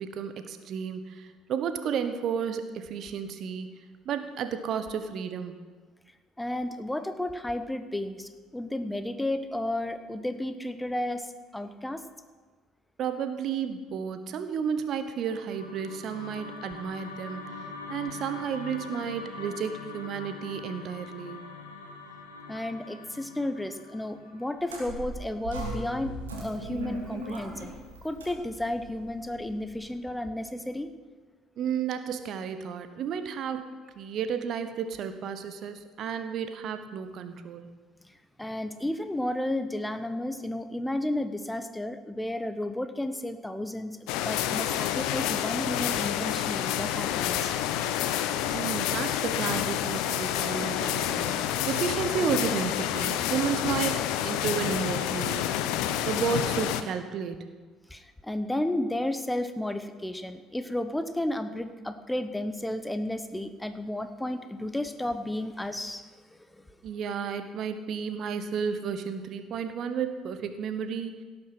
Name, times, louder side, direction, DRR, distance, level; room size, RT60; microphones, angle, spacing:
voice 1, 0.0-3.7 4.0-5.6 13.0-17.4 17.9-21.5 31.6-37.7 48.5-51.4 51.7-55.6 56.0-57.5 66.8-71.1, right 7 dB, 50° right, 10 dB, 1.0 m, -32 dB
voice 2, 6.4-12.0 22.5-27.7 28.0-30.9 38.0-47.5 57.9-66.6, left 1 dB, 10° left, 10 dB, 0.9 m, -33 dB
sound 1, 15.0-25.3, left 4 dB, 85° left, 1.3 m, -43 dB
sound 2, 24.6-29.9, right 2 dB, 75° right, 2.7 m, -39 dB
sound 3, 44.1-56.8, left 11 dB, 60° left, 0.7 m, -28 dB
17.5 x 8.0 x 5.9 m, 1.5 s
figure-of-eight pair, 55°, 0 cm